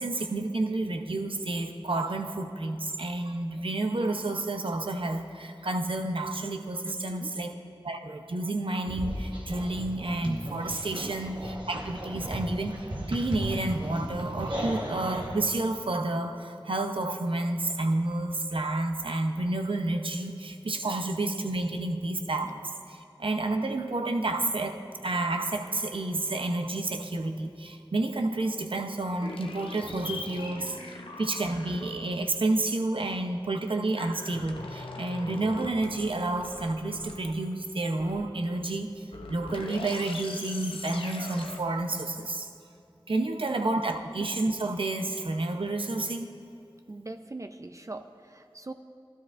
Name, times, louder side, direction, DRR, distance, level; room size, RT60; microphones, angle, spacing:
voice 1, 0.0-7.6 7.8-24.8 25.0-42.5 43.1-46.3, right 2 dB, 80° right, 5 dB, 0.7 m, -30 dB
voice 2, 6.9-7.3 10.9-11.1 43.5-43.6 46.9-48.7, right 2 dB, 35° right, 7 dB, 0.4 m, -41 dB
sound 1, 8.9-15.4, equal, 65° right, 1.2 m, -35 dB
sound 2, 29.2-32.2 34.0-37.6 38.0-38.7 39.1-41.6, left 3 dB, 85° left, 0.7 m, -42 dB
16.0 x 12.0 x 2.5 m, 2.4 s
wide cardioid pair, 45°, 9 cm